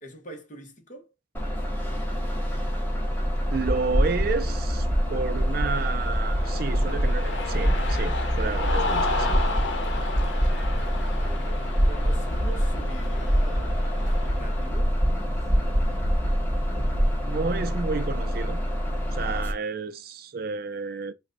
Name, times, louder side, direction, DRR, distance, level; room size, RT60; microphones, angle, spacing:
voice 1, 0.0-1.1 11.2-11.6 11.8-14.9, right 1 dB, 40° left, 1.0 m, -43 dB
Bus, 1.3-19.5, equal, 10° left, 1.0 m, -28 dB
sound 1, 3.2-17.2, equal, 15° right, 0.8 m, -26 dB
voice 2, 3.5-9.4 17.2-18.6 19.1-21.1, right 4 dB, 50° right, 0.4 m, -31 dB
Cheering, 5.3-14.6, left 3 dB, 70° left, 0.9 m, -34 dB
3.9 x 2.2 x 3.8 m
head